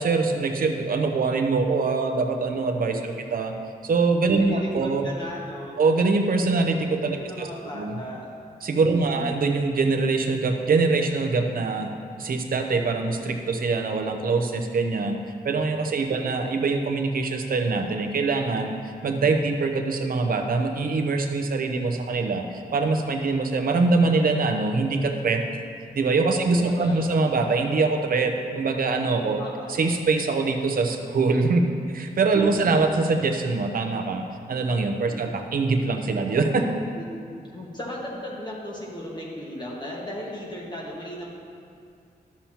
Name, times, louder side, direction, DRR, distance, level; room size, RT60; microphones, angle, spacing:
voice 1, 0.0-3.5 3.8-5.1 5.8-7.5 7.7-8.0 8.6-11.9 12.2-15.2 15.4-18.7 19.0-25.4 25.9-29.4 29.7-31.6 31.9-34.2 34.5-36.7, right 3 dB, 65° right, 4 dB, 0.8 m, -23 dB
voice 2, 4.3-5.8 7.1-8.3 8.9-9.3 16.1-16.2 26.6-27.2 29.4-29.7 32.4-32.8 35.1-35.2 36.9-37.1 37.5-41.3, left 1 dB, 25° left, -4 dB, 1.6 m, -36 dB
12.5 x 7.1 x 2.9 m, 2.4 s
wide cardioid pair, 150°, 16 cm